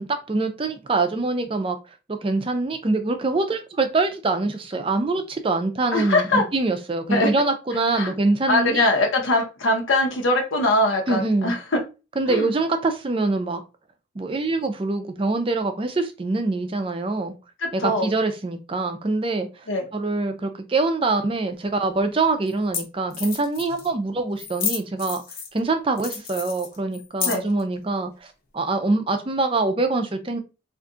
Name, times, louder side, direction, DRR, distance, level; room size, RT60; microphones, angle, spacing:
voice 1, 0.0-1.8 2.1-8.9 11.1-11.5 12.2-13.6 14.2-17.3 17.7-19.5 19.9-25.2 25.5-28.1 28.5-30.4, right 3 dB, 25° right, 0.4 m, -24 dB
voice 2, 5.9-6.4 7.1-7.3 7.9-8.1 8.5-11.8 12.3-12.5 17.6-18.1 19.7-19.9 27.2-27.4, left 2 dB, 80° left, 0.9 m, -22 dB
sound 1, 21.6-21.7 22.5-22.6 22.7-22.8 23.1-23.9 24.4-25.6 26.0-27.6, left 7 dB, 45° left, 0.8 m, -30 dB
2.5 x 2.3 x 3.7 m
head